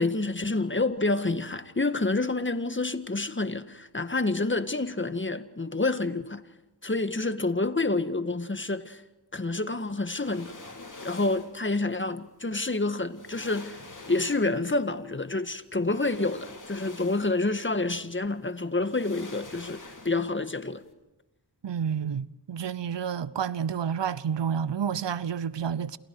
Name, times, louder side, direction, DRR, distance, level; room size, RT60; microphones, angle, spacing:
voice 1, 0.0-6.4 6.8-9.0 9.3-10.5 11.0-13.8 14.1-20.8, left 2 dB, 30° left, 1.7 m, -28 dB
sound 1, 10.1-11.6 12.7-12.8 13.1-14.7 15.8-17.5 17.9-18.0 18.8-20.4 20.7-20.8, left 3 dB, 45° left, 3.5 m, -45 dB
voice 2, 21.6-26.0, right 7 dB, 85° right, 0.9 m, -30 dB
28.5 x 28.0 x 4.8 m
cardioid pair, 50°, 42 cm